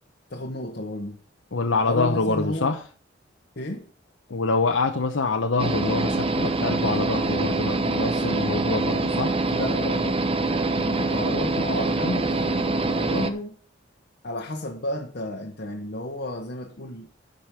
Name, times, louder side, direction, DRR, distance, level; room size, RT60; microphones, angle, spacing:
voice 1, 0.3-1.2 1.9-2.7 3.6-3.9 9.5-10.2 10.7-13.6 14.2-17.1, left 1 dB, 55° left, 1.1 m, -32 dB
voice 2, 1.5-2.8 4.3-9.4, left 3 dB, 70° left, 0.9 m, -25 dB
sound 1, 5.6-13.3, right 3 dB, 30° right, 0.9 m, -25 dB
10.5 x 5.3 x 6.8 m
head